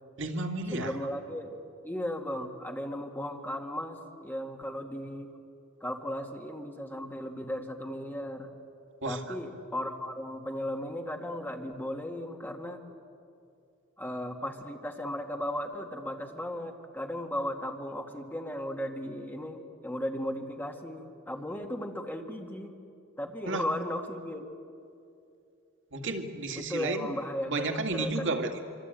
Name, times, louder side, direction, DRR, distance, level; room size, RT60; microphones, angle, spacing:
voice 1, 0.2-1.0 9.0-9.3 23.5-23.7 25.9-27.1 27.4-28.6, right 2 dB, 65° right, 5 dB, 2.2 m, -32 dB
voice 2, 0.7-1.6 1.8-5.3 5.8-8.5 9.0-12.8 14.0-22.7 23.2-24.5 26.6-28.4, left 1 dB, 10° left, 3 dB, 2.0 m, -36 dB
25.5 x 25.0 x 9.2 m, 2.5 s
head